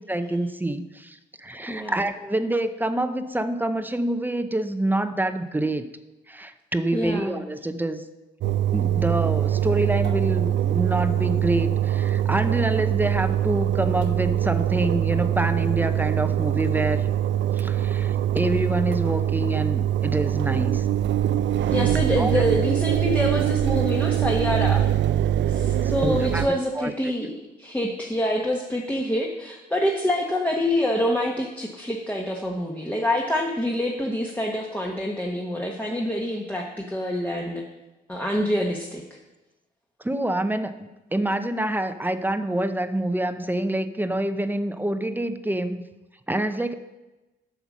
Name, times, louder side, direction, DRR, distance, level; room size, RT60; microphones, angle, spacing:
voice 1, 0.1-5.9 6.3-8.0 8.7-17.1 17.5-20.9 22.2-22.4 25.8-26.4 26.8-27.1 40.0-45.8 46.3-46.7, right 1 dB, 10° right, 9 dB, 0.6 m, -26 dB
voice 2, 1.7-2.0 6.9-7.4 21.7-24.8 25.5-37.6 38.1-39.2, left 1 dB, 10° left, -1 dB, 1.1 m, -26 dB
Engine, 8.4-26.5, right 11 dB, 65° right, 0.5 m, -23 dB
8.2 x 6.9 x 6.1 m, 1.1 s
cardioid pair, 90°, 20 cm